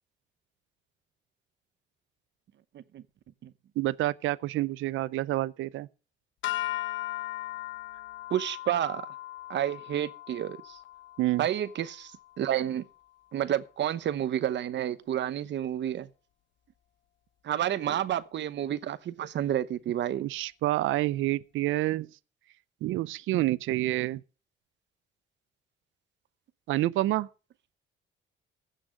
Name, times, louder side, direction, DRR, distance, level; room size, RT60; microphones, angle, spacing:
voice 1, 3.8-5.9 11.2-11.5 17.9-18.0 20.2-22.1 22.8-24.2 26.7-27.3, right 16 dB, 80° right, 0.5 m, -28 dB
sound 1, 6.4-12.8, left 16 dB, 75° left, 1.0 m, -38 dB
voice 2, 8.3-9.1 9.5-10.8 11.4-12.8 13.3-16.1 17.4-20.3, right 11 dB, 65° right, 0.9 m, -30 dB
15.5 x 6.2 x 6.2 m
cardioid pair, 90°, 20 cm